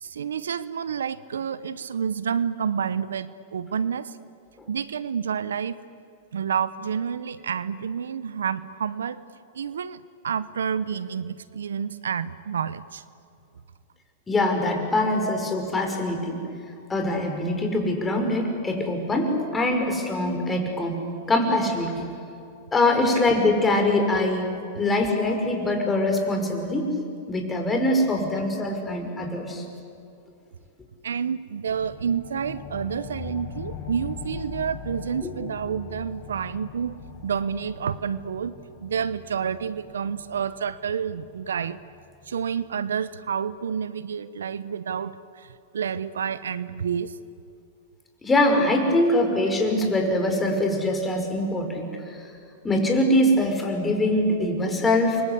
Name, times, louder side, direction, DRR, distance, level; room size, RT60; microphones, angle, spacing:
voice 1, 0.0-4.2 4.7-5.8 6.3-9.2 9.5-13.0 15.2-15.4 31.0-37.0 37.2-38.5 38.8-41.8 42.3-45.5 45.7-47.1, right 7 dB, 80° right, 16 dB, 0.9 m, -29 dB
voice 2, 14.3-16.4 16.9-21.0 21.3-22.1 22.7-24.5 24.8-26.9 27.3-29.6 35.2-35.3 48.2-51.9 52.6-55.2, left 1 dB, 15° left, 3 dB, 5.6 m, -23 dB
sound 1, 31.7-42.7, left 6 dB, 45° left, 5.9 m, -41 dB
29.0 x 24.0 x 8.3 m, 2.5 s
hypercardioid pair, 105°, 0 cm